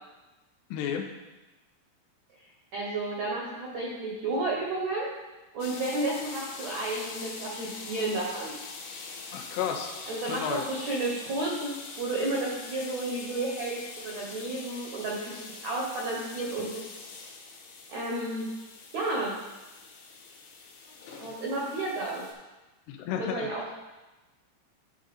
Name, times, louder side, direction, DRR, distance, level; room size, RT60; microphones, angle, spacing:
voice 1, 0.7-1.1 9.3-9.9 10.3-10.7 22.9-23.5, left 8 dB, 85° left, 4 dB, 2.7 m, -32 dB
voice 2, 2.7-5.1 5.5-8.5 10.1-16.8 17.9-18.5 18.9-19.3 21.2-22.3 23.1-23.7, right 2 dB, 80° right, -3 dB, 1.6 m, -32 dB
sound 1, 5.6-22.3, left 4 dB, 70° left, 2.3 m, -43 dB
11.0 x 3.8 x 5.2 m, 1.1 s
omnidirectional pair, 4.9 m